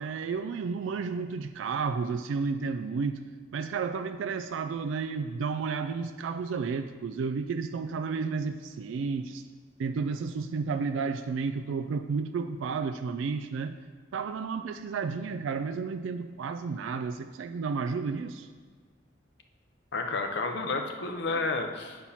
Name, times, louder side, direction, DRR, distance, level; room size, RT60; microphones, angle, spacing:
voice 1, 0.0-3.2 3.5-9.4 9.8-13.8 14.1-18.5 21.3-21.4, right 5 dB, 80° right, 9 dB, 0.3 m, -32 dB
voice 2, 19.9-22.0, left 3 dB, 60° left, 4 dB, 0.8 m, -31 dB
8.2 x 4.5 x 5.6 m, 1.5 s
head